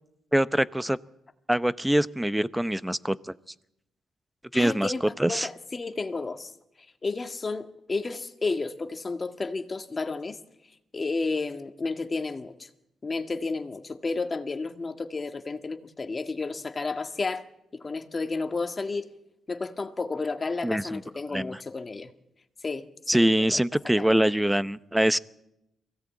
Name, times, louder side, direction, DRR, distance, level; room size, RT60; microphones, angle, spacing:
voice 1, 0.3-1.0 1.5-3.3 4.5-4.9 5.2-5.5 20.6-21.0 21.3-21.6 23.1-25.2, right 1 dB, 5° right, 0.7 m, -24 dB
voice 2, 4.5-6.5 7.0-10.4 10.9-12.7 13.0-17.4 17.7-19.1 19.5-22.1 22.6-22.9 23.1-23.3 23.5-23.6 23.8-24.1, left 3 dB, 35° left, 1.7 m, -32 dB
23.0 x 16.5 x 8.5 m
cardioid pair, 70°, 0 cm